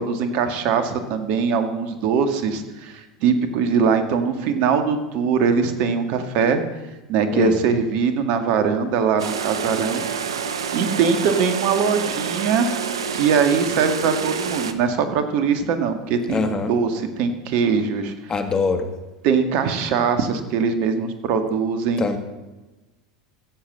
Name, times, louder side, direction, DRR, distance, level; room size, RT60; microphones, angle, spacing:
voice 1, 0.0-6.6 7.1-10.1 10.7-12.7 13.1-18.3 19.2-22.0, right 6 dB, 55° right, 8 dB, 1.9 m, -21 dB
sound 1, 9.2-14.7, right 6 dB, 85° right, 0.9 m, -27 dB
voice 2, 16.3-16.7 18.3-18.9 22.0-22.2, left 4 dB, 25° left, 8 dB, 1.7 m, -23 dB
15.5 x 7.5 x 7.5 m, 1.1 s
hypercardioid pair, 90°, 3 cm